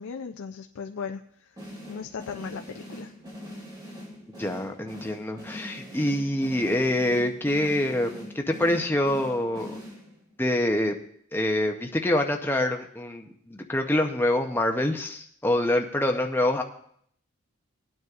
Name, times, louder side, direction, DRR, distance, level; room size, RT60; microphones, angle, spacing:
voice 1, 0.0-1.6 1.9-3.1, left 6 dB, 75° left, 5 dB, 0.4 m, -37 dB
sound 1, 1.6-10.4, equal, 20° right, 1.9 m, -42 dB
voice 2, 4.4-9.7 10.4-10.9 11.3-16.6, left 1 dB, 10° left, 3 dB, 0.6 m, -26 dB
19.0 x 9.3 x 2.4 m, 0.65 s
head